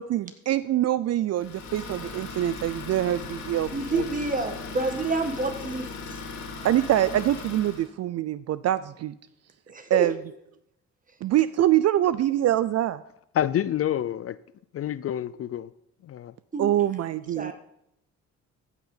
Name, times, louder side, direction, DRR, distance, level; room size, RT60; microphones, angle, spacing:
voice 1, 0.0-4.0 6.6-9.1 9.9-10.2 11.2-13.0 16.6-17.5, right 13 dB, 55° right, 16 dB, 0.4 m, -24 dB
Idling, 1.4-7.9, left 4 dB, 70° left, 2.4 m, -38 dB
voice 2, 3.7-6.2 9.7-10.1 16.5-16.7 17.4-17.5, right 2 dB, 25° right, 7 dB, 1.7 m, -28 dB
voice 3, 13.3-14.4 14.7-15.7 16.0-16.3, left 11 dB, 50° left, 17 dB, 0.5 m, -28 dB
14.5 x 6.0 x 5.6 m, 0.77 s
cardioid pair, 90°, 30 cm